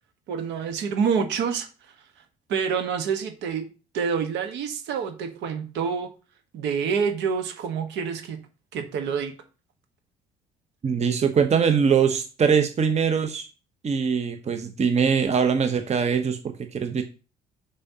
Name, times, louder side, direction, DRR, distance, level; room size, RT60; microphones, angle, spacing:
voice 1, 0.3-1.7 2.5-3.7 3.9-6.1 6.5-8.4 8.7-9.3, right 6 dB, 70° right, 7 dB, 1.2 m, -27 dB
voice 2, 10.8-13.5 13.8-17.0, right 6 dB, 35° right, 8 dB, 0.9 m, -22 dB
6.7 x 5.5 x 2.8 m, 0.34 s
hypercardioid pair, 55°, 19 cm